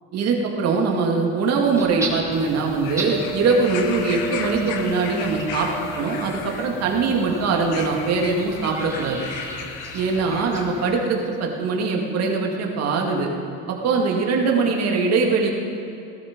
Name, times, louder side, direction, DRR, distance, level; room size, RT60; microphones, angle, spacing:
voice 1, 0.1-9.3 9.9-13.3 13.7-15.5, right 4 dB, 50° right, 1 dB, 2.2 m, -22 dB
sound 1, 1.8-10.9, right 2 dB, 10° right, 2.0 m, -37 dB
sound 2, 2.3-11.0 11.9-12.0, left 7 dB, 90° left, 1.3 m, -36 dB
sound 3, 3.1-7.5, left 5 dB, 10° left, 0.7 m, -36 dB
17.5 x 12.5 x 5.2 m, 2.9 s
cardioid pair, 145°, 32 cm